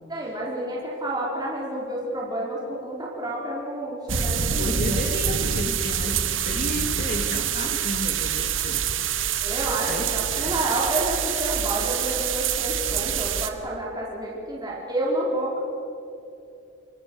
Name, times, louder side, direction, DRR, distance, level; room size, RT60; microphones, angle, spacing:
voice 1, 0.1-5.0 9.4-15.6, right 1 dB, 20° right, -5 dB, 4.5 m, -29 dB
sound 1, 4.1-13.5, right 8 dB, 80° right, 1.5 m, -26 dB
voice 2, 4.6-8.8 9.2-9.4 9.8-10.6, left 1 dB, 45° left, 5 dB, 2.6 m, -32 dB
28.0 x 22.0 x 6.4 m, 2.8 s
head